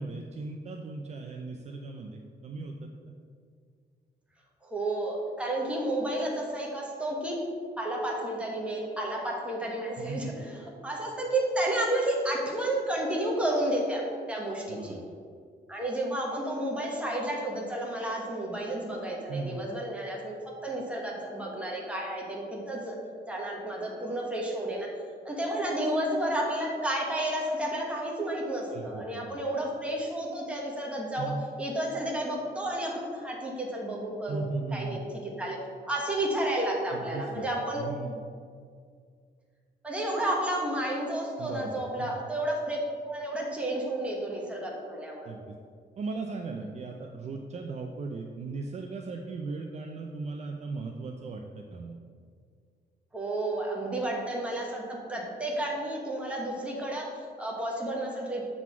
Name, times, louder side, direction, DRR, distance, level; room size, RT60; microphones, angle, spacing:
voice 1, 0.0-3.1 10.0-10.3 14.7-15.1 19.3-19.6 28.7-29.3 31.2-31.4 34.3-35.0 36.9-37.5 37.8-38.2 41.4-42.2 45.2-45.6 46.0-52.0, right 3 dB, 40° right, 2 dB, 0.5 m, -37 dB
voice 2, 4.6-7.4 7.8-15.0 15.7-20.3 20.6-23.0 23.3-24.9 25.2-31.3 31.6-34.4 34.7-35.6 35.8-38.0 39.8-45.3 53.1-58.4, right 1 dB, 5° right, -3 dB, 1.2 m, -31 dB
7.4 x 4.0 x 5.9 m, 2.1 s
wide cardioid pair, 175°, 18 cm